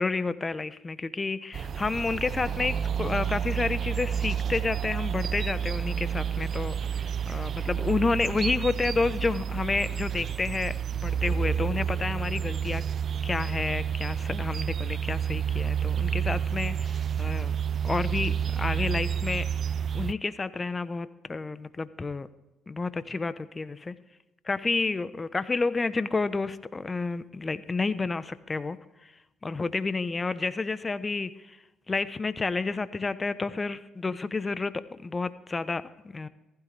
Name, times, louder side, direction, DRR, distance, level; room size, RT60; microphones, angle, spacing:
voice 1, 0.0-12.8 13.2-17.5 17.8-19.5 19.9-22.3 22.7-23.9 24.4-29.1 29.4-31.6 31.9-36.3, left 3 dB, 30° left, 14 dB, 1.0 m, -30 dB
sound 1, 1.5-20.1, right 8 dB, 55° right, 0.4 m, -30 dB
15.5 x 15.0 x 3.4 m, 1.0 s
supercardioid pair, 60°, 0 cm